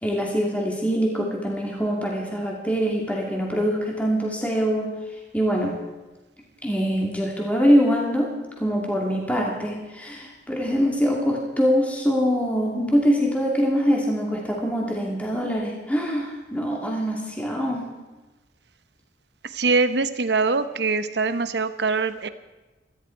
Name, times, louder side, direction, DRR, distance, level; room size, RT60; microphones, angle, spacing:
voice 1, 0.0-4.9 5.3-5.8 6.6-17.9, equal, 10° left, -1 dB, 2.5 m, -24 dB
voice 2, 19.5-22.3, right 4 dB, 70° right, 11 dB, 0.9 m, -23 dB
18.0 x 14.0 x 4.6 m, 1.2 s
head